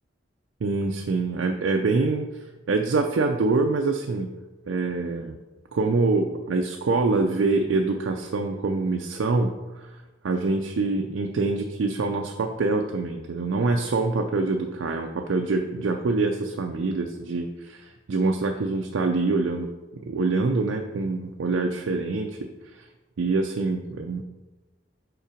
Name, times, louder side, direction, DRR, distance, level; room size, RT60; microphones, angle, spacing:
voice 1, 0.6-2.3 2.7-4.3 4.7-5.4 5.7-9.5 9.8-9.9 10.2-22.5 22.7-22.8 23.2-24.2, right 3 dB, 85° right, 3 dB, 0.4 m, -25 dB
5.5 x 3.8 x 5.0 m, 1.1 s
head